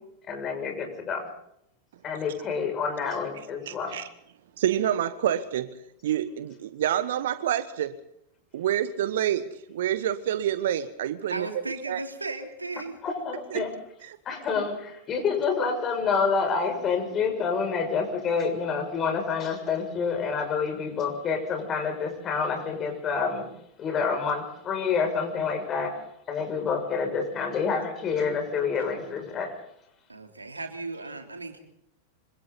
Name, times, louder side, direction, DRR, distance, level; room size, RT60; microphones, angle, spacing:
voice 1, 0.3-1.2 2.0-4.0 13.0-13.7 14.2-23.5 23.8-25.9 26.3-29.5, left 5 dB, 30° left, 4 dB, 6.6 m, -28 dB
voice 2, 3.7-4.1 4.6-5.7 6.0-8.0 8.5-11.5 11.9-12.0 13.5-13.7 14.0-14.2, right 11 dB, 60° right, 13 dB, 1.2 m, -27 dB
voice 3, 11.3-13.0 30.1-31.6, right 3 dB, 80° right, 4 dB, 3.2 m, -36 dB
26.0 x 25.5 x 4.1 m, 0.77 s
figure-of-eight pair, 90°, 0 cm